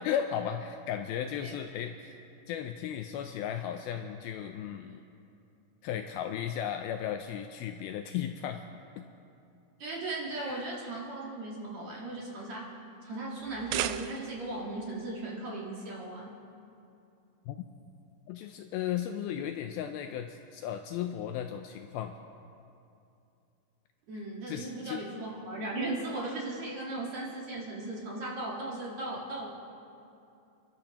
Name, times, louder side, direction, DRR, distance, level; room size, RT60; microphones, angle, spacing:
voice 1, 0.0-2.2 2.5-5.0 5.8-8.6 9.0-9.1 10.4-10.7 17.5-17.6 18.3-22.1 24.5-25.0, left 9 dB, 85° left, 6 dB, 2.2 m, -35 dB
voice 2, 9.8-16.4 24.1-29.5, right 2 dB, 55° right, -4 dB, 2.5 m, -37 dB
sound 1, 13.4-14.6, right 13 dB, 90° right, 2.1 m, -35 dB
29.0 x 12.0 x 2.9 m, 2.6 s
omnidirectional pair, 4.7 m